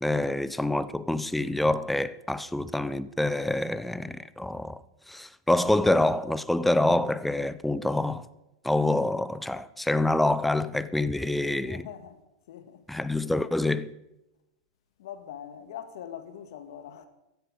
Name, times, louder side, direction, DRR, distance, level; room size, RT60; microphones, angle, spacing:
voice 1, 0.0-4.8 5.1-8.3 8.6-11.9 12.9-13.9, left 1 dB, 5° left, 0.6 m, -26 dB
voice 2, 11.6-12.2 12.5-12.9 15.0-17.1, left 9 dB, 65° left, 1.8 m, -42 dB
15.5 x 10.0 x 5.2 m
hypercardioid pair, 100°, 3 cm